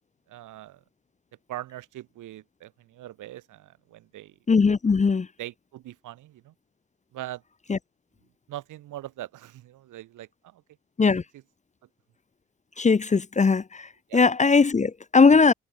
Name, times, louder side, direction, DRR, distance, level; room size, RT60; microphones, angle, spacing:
voice 1, 0.3-0.8 1.5-4.3 5.4-6.5 7.1-7.4 8.5-10.6 11.3-11.4 14.1-14.2, right 14 dB, 85° right, 7.7 m, -41 dB
voice 2, 4.5-5.3 7.7-7.8 11.0-11.2 12.8-13.9 14.1-15.5, left 4 dB, 25° left, 0.9 m, -19 dB
cardioid pair, 90°, 30 cm